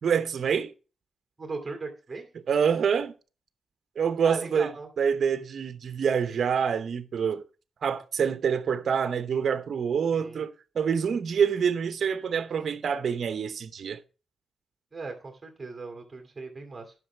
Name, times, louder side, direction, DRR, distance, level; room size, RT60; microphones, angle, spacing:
voice 1, 0.0-0.7 2.5-3.1 4.0-7.4 7.8-14.0, right 7 dB, 55° right, 0.9 m, -26 dB
voice 2, 1.4-2.3 4.2-4.9 10.1-10.4 14.9-16.9, right 3 dB, 25° right, 2.4 m, -38 dB
11.0 x 6.0 x 4.4 m
wide cardioid pair, 135°, 0 cm